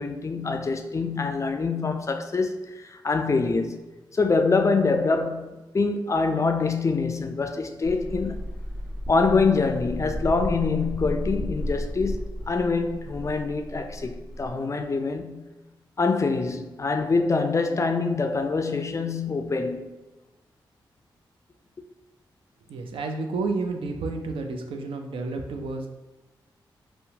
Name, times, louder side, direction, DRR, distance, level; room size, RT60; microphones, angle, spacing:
voice 1, 0.0-3.8 4.1-8.4 9.1-15.4 16.0-20.0, left 4 dB, 35° left, 0.3 m, -25 dB
sound 1, 7.8-14.5, equal, 10° right, 1.2 m, -33 dB
voice 2, 22.7-25.9, right 3 dB, 75° right, 0.4 m, -30 dB
2.7 x 2.1 x 2.7 m
supercardioid pair, 50°, 9 cm